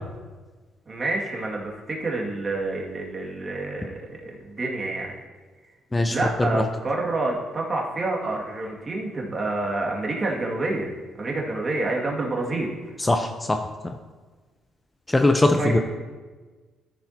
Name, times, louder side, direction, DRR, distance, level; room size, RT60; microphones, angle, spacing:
voice 1, 0.9-5.1 6.1-10.9 11.2-12.7 15.6-15.8, right 2 dB, 35° right, -1 dB, 2.2 m, -28 dB
voice 2, 5.9-6.6 13.0-13.9 15.1-15.8, left 2 dB, 20° left, 5 dB, 0.7 m, -21 dB
13.5 x 6.9 x 2.9 m, 1.3 s
supercardioid pair, 65°, 0 cm